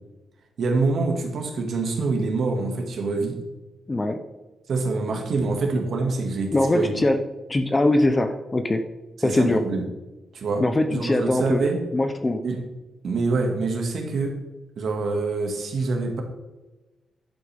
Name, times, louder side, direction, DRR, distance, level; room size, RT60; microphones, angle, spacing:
voice 1, 0.6-3.4 4.7-6.9 9.2-9.8 10.3-10.6 10.9-11.8 12.4-12.6 13.0-14.4 14.8-16.2, right 3 dB, 55° right, 2 dB, 1.9 m, -25 dB
voice 2, 3.9-4.2 6.5-7.2 7.5-8.8 9.2-9.6 10.6-11.6 11.9-12.4, left 2 dB, 15° left, 8 dB, 0.6 m, -22 dB
10.5 x 9.8 x 3.5 m, 1.1 s
wide cardioid pair, 175°, 0 cm